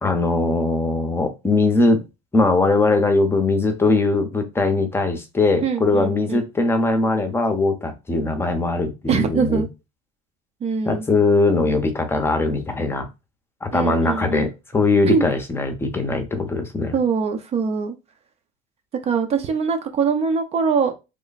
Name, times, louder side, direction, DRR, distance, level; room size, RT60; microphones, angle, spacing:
voice 1, 0.0-2.0 2.3-9.7 10.8-13.1 13.6-17.0, left 3 dB, 15° left, 6 dB, 0.8 m, -20 dB
voice 2, 5.6-6.4 9.1-9.7 10.6-11.0 13.7-14.5 15.1-15.2 16.9-18.0 19.1-20.9, right 5 dB, 35° right, 6 dB, 0.6 m, -22 dB
3.2 x 2.2 x 4.0 m, 0.26 s
supercardioid pair, 120°, 18 cm